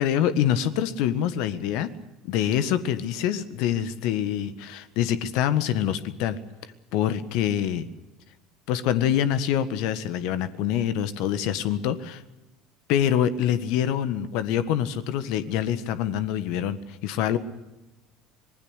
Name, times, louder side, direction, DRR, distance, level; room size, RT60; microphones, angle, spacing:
voice 1, 0.0-1.9 2.2-6.4 6.9-7.9 8.7-12.2 12.9-17.4, left 10 dB, 60° left, 13 dB, 1.6 m, -25 dB
25.5 x 20.5 x 6.5 m, 1.0 s
figure-of-eight pair, 65°, 0 cm